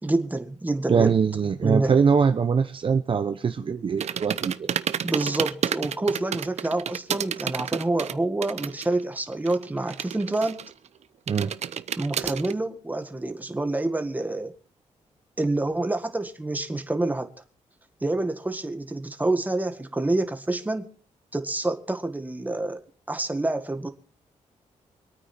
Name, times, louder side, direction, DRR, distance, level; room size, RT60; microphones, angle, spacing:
voice 1, 0.0-1.1 1.6-2.0 5.0-10.6 12.0-14.5 15.4-17.3 18.0-20.9 21.3-22.8 23.1-23.9, right 2 dB, 15° right, 7 dB, 1.8 m, -27 dB
voice 2, 0.9-4.7 11.3-11.5, right 6 dB, 45° right, 8 dB, 1.0 m, -22 dB
sound 1, 4.0-9.0 9.3-10.9 11.3-12.5, right 8 dB, 65° right, 0.8 m, -30 dB
25.0 x 9.3 x 4.4 m, 0.40 s
cardioid pair, 100°, 12 cm